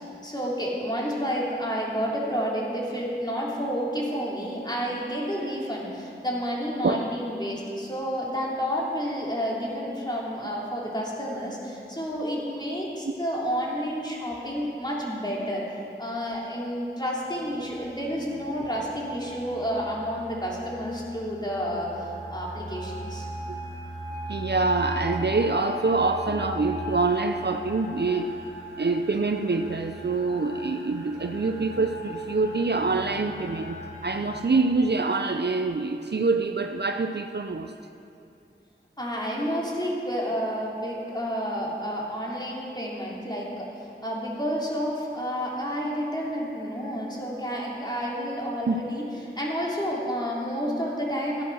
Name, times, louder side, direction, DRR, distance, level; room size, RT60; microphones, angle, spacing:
voice 1, 0.2-15.6 16.0-23.3 39.0-49.0 49.4-51.4, equal, 20° left, -4 dB, 3.1 m, -30 dB
sound 1, 17.2-34.4, equal, 75° left, 3.2 m, -39 dB
voice 2, 24.3-28.3 28.8-37.7 48.7-48.8, right 3 dB, 55° right, 6 dB, 0.6 m, -25 dB
13.5 x 9.3 x 6.3 m, 2.6 s
wide cardioid pair, 40°, 21 cm